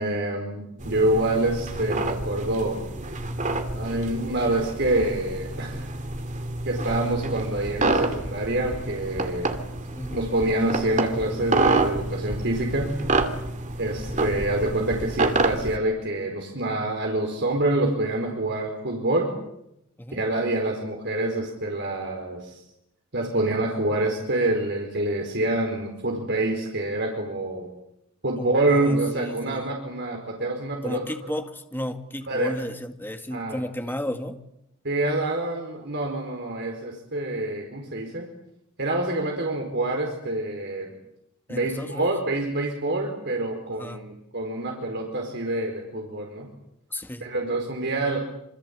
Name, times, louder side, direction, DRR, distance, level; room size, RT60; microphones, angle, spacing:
voice 1, 0.0-2.8 3.7-5.9 6.6-9.6 10.1-12.9 13.8-19.3 20.1-22.6 23.1-27.7 28.2-31.4 32.3-32.5 33.3-33.6 34.8-38.3 38.8-40.9 41.5-46.5 47.2-48.2, right 2 dB, 55° right, 1 dB, 4.7 m, -26 dB
sound 1, 0.8-15.8, right 2 dB, 35° right, 2.5 m, -28 dB
voice 2, 9.9-10.3 14.1-14.2 20.0-20.2 28.4-29.6 30.8-34.4 41.5-42.2 43.8-44.0 46.9-47.3, left 1 dB, 10° left, 6 dB, 2.1 m, -33 dB
26.5 x 25.0 x 8.5 m, 0.83 s
head